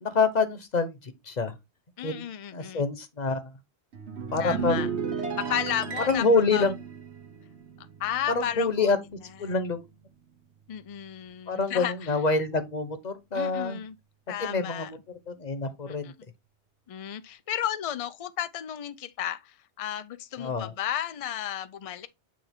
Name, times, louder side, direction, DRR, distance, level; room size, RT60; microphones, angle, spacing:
voice 1, 0.0-1.5 2.0-2.2 2.5-3.4 4.3-4.9 6.0-6.7 8.3-9.0 9.4-9.8 11.5-13.8 14.4-15.0 15.3-16.1 20.4-20.7, left 4 dB, 45° left, 1.0 m, -26 dB
voice 2, 2.0-2.8 4.4-4.9 5.4-6.6 7.8-9.0 9.4-9.7 10.7-12.2 13.3-14.0 14.3-14.9 15.9-16.1 16.9-22.1, left 10 dB, 65° left, 0.3 m, -33 dB
sound 1, 3.9-8.6 8.8-9.1, right 6 dB, 85° right, 1.4 m, -34 dB
8.6 x 3.4 x 3.5 m
omnidirectional pair, 1.1 m